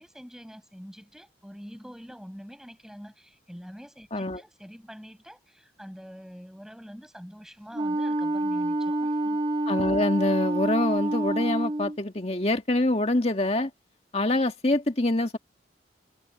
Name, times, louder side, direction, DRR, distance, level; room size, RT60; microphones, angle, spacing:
voice 1, 0.0-9.4, equal, 5° right, 7.3 m, -45 dB
Wind instrument woodwind instrument, 7.7-12.0, right 1 dB, 30° right, 1.7 m, -27 dB
voice 2, 9.7-13.7 14.1-15.4, left 2 dB, 35° left, 1.9 m, -25 dB
head